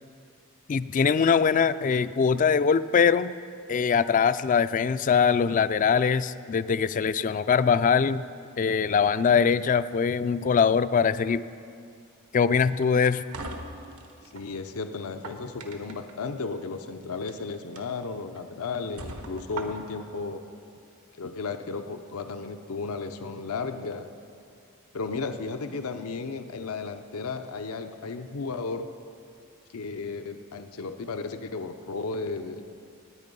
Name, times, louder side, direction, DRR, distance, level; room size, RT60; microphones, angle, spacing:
voice 1, 0.7-3.3 3.7-8.2 8.6-11.4 12.3-13.2, left 6 dB, 35° left, 15 dB, 0.3 m, -22 dB
sound 1, 12.8-14.5 15.0-16.1 17.1-17.3 17.8-17.9 18.4-18.5 19.0-20.1, right 2 dB, 80° right, 1.3 m, -40 dB
voice 2, 14.3-20.4 21.2-24.1 24.9-28.9 29.7-32.6, left 4 dB, 85° left, 8 dB, 0.6 m, -34 dB
19.5 x 8.9 x 5.4 m, 2.4 s
head